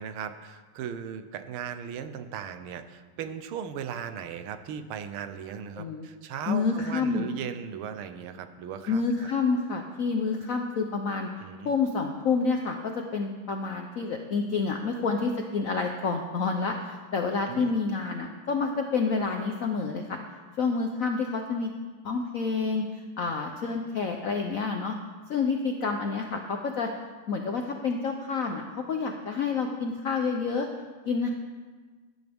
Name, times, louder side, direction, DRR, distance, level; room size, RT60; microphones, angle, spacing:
voice 1, 0.0-9.3 11.4-11.7 17.5-17.7, right 8 dB, 75° right, 10 dB, 1.6 m, -37 dB
voice 2, 5.8-6.1 6.5-7.3 8.9-11.3 11.6-20.2 20.6-21.7 22.0-25.0 25.3-26.9 27.3-30.7 31.0-31.3, left 4 dB, 65° left, 3 dB, 0.8 m, -28 dB
17.5 x 10.0 x 3.5 m, 1.4 s
omnidirectional pair, 2.4 m